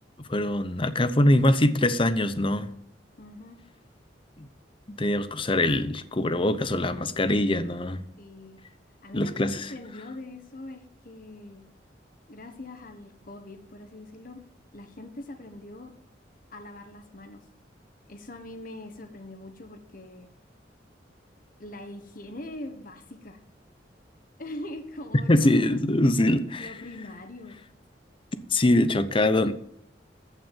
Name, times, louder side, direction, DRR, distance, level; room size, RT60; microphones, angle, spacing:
voice 1, 0.2-2.7 4.4-4.5 5.0-8.0 9.1-9.6 25.3-26.7 28.5-29.5, left 1 dB, 30° left, 12 dB, 0.8 m, -23 dB
voice 2, 3.1-3.6 8.2-8.6 9.0-11.6 12.3-14.4 14.7-15.9 16.5-17.4 18.1-20.3 21.6-23.4 24.4-25.7 26.6-27.6, left 1 dB, 50° left, 6 dB, 1.4 m, -42 dB
14.5 x 5.8 x 7.4 m, 0.72 s
head